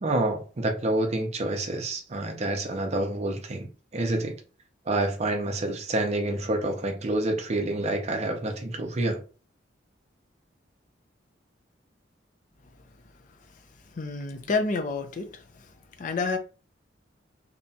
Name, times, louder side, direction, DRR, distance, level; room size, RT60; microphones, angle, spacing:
voice 1, 0.0-3.7 3.9-4.3 4.9-9.2, right 2 dB, 35° right, 0.5 m, -28 dB
voice 2, 13.9-15.7 16.0-16.4, left 4 dB, 45° left, 0.4 m, -29 dB
2.7 x 2.2 x 2.6 m
head